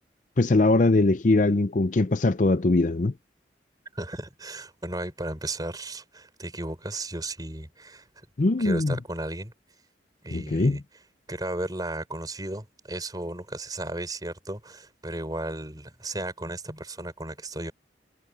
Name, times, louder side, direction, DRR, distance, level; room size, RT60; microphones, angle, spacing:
voice 1, 0.4-3.1 8.4-8.9 10.3-10.8, left 2 dB, 45° left, 0.5 m, -21 dB
voice 2, 3.9-8.1 8.6-9.5 10.2-10.8 11.3-17.7, right 1 dB, 20° right, 5.1 m, -35 dB
head